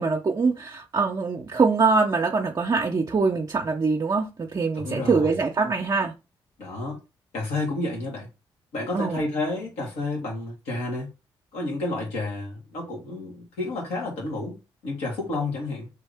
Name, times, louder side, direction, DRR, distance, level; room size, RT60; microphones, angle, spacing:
voice 1, 0.0-6.1 8.9-9.2, right 4 dB, 40° right, 0.6 m, -23 dB
voice 2, 4.7-5.4 6.6-7.0 7.3-8.3 8.7-11.1 11.5-14.6 14.8-15.9, left 2 dB, 85° left, 1.7 m, -30 dB
3.3 x 2.7 x 3.4 m
supercardioid pair, 50°, 10 cm